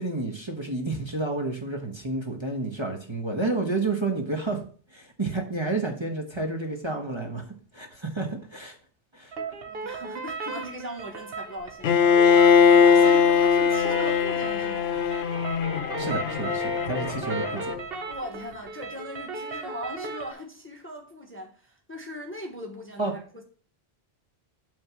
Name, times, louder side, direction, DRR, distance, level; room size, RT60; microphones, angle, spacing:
voice 1, 0.0-4.6 4.9-7.4 7.7-8.8 9.1-9.3 16.0-17.8 23.0-23.1, right 2 dB, 25° right, 1.2 m, -30 dB
sound 1, 9.3-20.3, right 4 dB, 60° right, 1.1 m, -36 dB
voice 2, 9.6-14.9 18.1-23.4, equal, 10° left, 1.1 m, -39 dB
Bowed string instrument, 11.8-17.8, left 7 dB, 70° left, 0.8 m, -21 dB
8.6 x 3.9 x 6.1 m
omnidirectional pair, 1.1 m